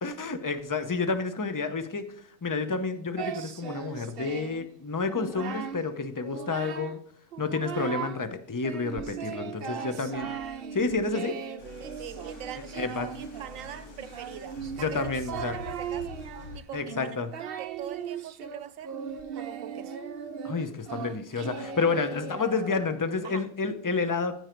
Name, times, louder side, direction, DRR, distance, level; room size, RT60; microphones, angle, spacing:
voice 1, 0.0-7.0 7.4-10.3 10.7-11.4 12.7-13.1 14.8-15.5 16.7-17.3 20.4-24.4, left 4 dB, 20° left, 0.5 m, -30 dB
Singing, 3.2-4.7 5.0-5.8 6.2-7.0 7.3-8.2 8.6-23.1, right 7 dB, 55° right, 0.8 m, -38 dB
voice 2, 9.7-10.1 11.8-15.0 15.3-16.2 16.5-17.2 17.6-18.9 19.4-20.0 23.2-23.5, right 10 dB, 85° right, 1.1 m, -42 dB
sound 1, 11.6-16.6, left 4 dB, 70° left, 1.6 m, -45 dB
14.0 x 4.8 x 4.5 m
omnidirectional pair, 1.3 m